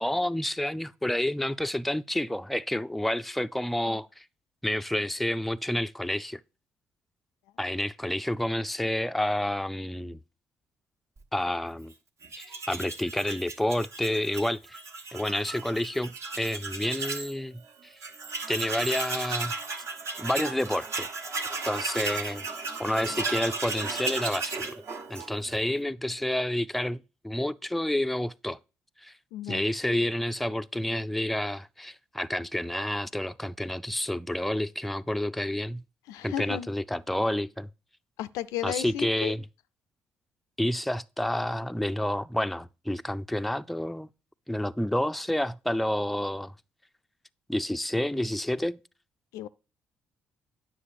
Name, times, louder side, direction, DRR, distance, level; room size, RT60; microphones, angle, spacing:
voice 1, 0.0-4.2 4.6-6.4 7.6-10.2 11.3-11.9 12.4-14.8 15.1-17.9 18.5-19.5 20.2-21.1 21.6-22.4 22.8-24.8 25.1-28.6 29.0-29.1 29.5-35.8 36.2-37.7 38.6-39.4 40.6-44.1 44.5-46.5 47.5-48.8, left 1 dB, ahead, 0.4 m, -29 dB
Tools, 12.2-17.3 17.7-17.8 18.0-25.6, right 3 dB, 55° right, 1.3 m, -35 dB
voice 2, 29.3-29.6 36.1-36.7 38.2-39.3 49.3-49.5, left 12 dB, 75° left, 0.3 m, -34 dB
9.6 x 6.2 x 2.5 m
hypercardioid pair, 50°, 6 cm